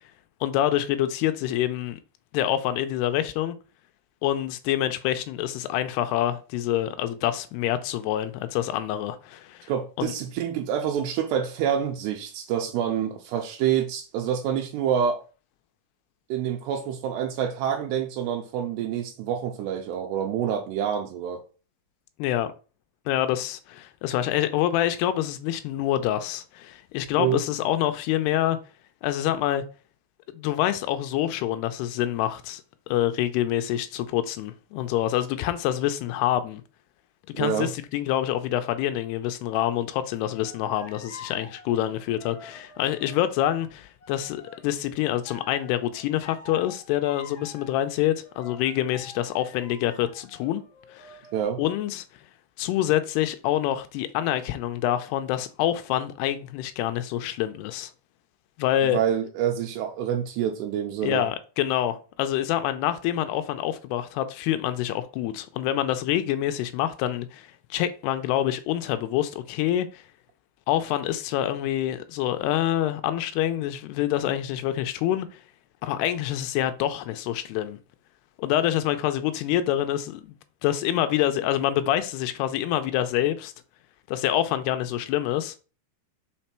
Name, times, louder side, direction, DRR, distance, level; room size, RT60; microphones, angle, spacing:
voice 1, 0.4-2.0 2.3-3.6 4.2-9.7 10.0-10.1 22.2-22.5 23.1-28.6 29.0-29.6 30.3-32.6 32.9-36.6 37.4-50.6 50.9-51.2 51.6-52.0 52.6-57.9 58.6-59.0 61.0-70.0 70.7-75.3 75.8-77.8 78.4-80.3 80.6-83.5 84.1-85.5, left 12 dB, 80° left, 2.4 m, -26 dB
voice 2, 9.7-15.2 16.3-21.4 27.2-27.4 37.3-37.7 51.3-51.6 58.9-61.2, right 9 dB, 85° right, 2.7 m, -27 dB
sound 1, 40.3-43.3 44.0-44.8 45.2-47.8 48.2-51.4, left 4 dB, 55° left, 1.4 m, -47 dB
5.8 x 4.4 x 4.3 m
omnidirectional pair, 5.0 m